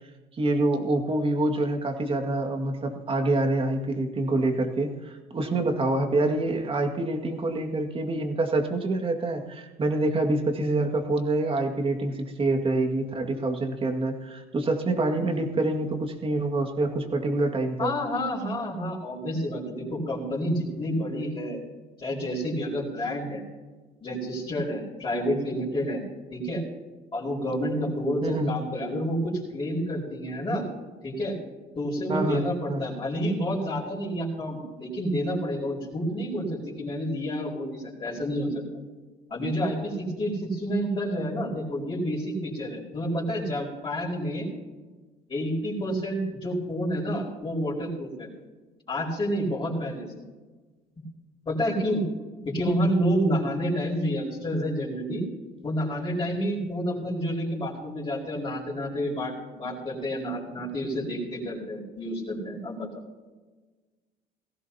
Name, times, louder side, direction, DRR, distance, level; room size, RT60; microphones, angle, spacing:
voice 1, 0.4-17.9 28.2-28.5 32.1-32.8, right 2 dB, 30° right, 4 dB, 2.1 m, -26 dB
voice 2, 17.8-21.6 22.0-23.4 24.0-26.0 26.3-26.6 27.1-30.7 31.0-31.3 31.7-38.6 39.3-44.5 45.3-48.3 48.9-50.1 51.5-52.0 52.4-55.2 55.6-63.0, equal, 30° left, -6 dB, 4.6 m, -29 dB
19.0 x 15.5 x 2.9 m, 1.3 s
cardioid pair, 110°, 17 cm